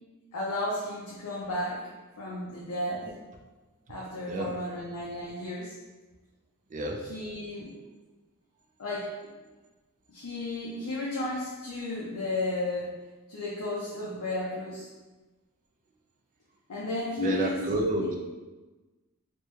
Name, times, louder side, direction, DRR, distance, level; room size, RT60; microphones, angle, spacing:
voice 1, 0.3-1.9 2.2-3.1 3.9-5.7 7.1-7.7 8.8-9.3 10.1-12.9 13.3-14.9 16.7-17.6, left 2 dB, 85° left, -6 dB, 0.6 m, -33 dB
voice 2, 4.3-4.6 6.7-7.2 17.2-18.2, right 2 dB, 35° right, 1 dB, 0.3 m, -31 dB
3.4 x 2.1 x 3.1 m, 1.2 s
head